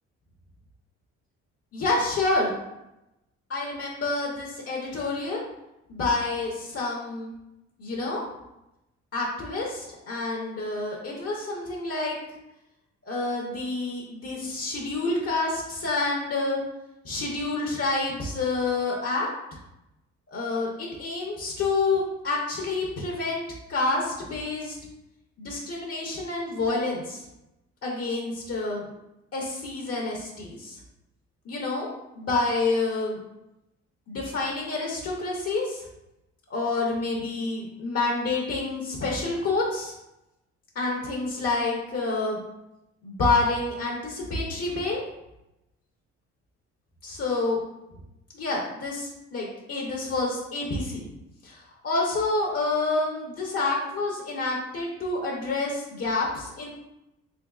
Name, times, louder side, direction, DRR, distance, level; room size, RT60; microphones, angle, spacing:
voice 1, 1.7-2.5 3.5-5.4 5.9-7.3 7.8-8.2 9.1-12.2 13.0-16.6 17.0-19.3 20.3-23.4 23.7-24.8 25.4-27.2 27.8-28.8 29.3-30.8 31.5-33.2 34.1-35.8 36.5-39.9 40.7-42.4 43.0-45.0 47.0-47.6 48.3-51.1 51.4-56.7, left 3 dB, 50° left, -2 dB, 0.8 m, -28 dB
3.5 x 3.3 x 2.4 m, 0.91 s
cardioid pair, 90°, 30 cm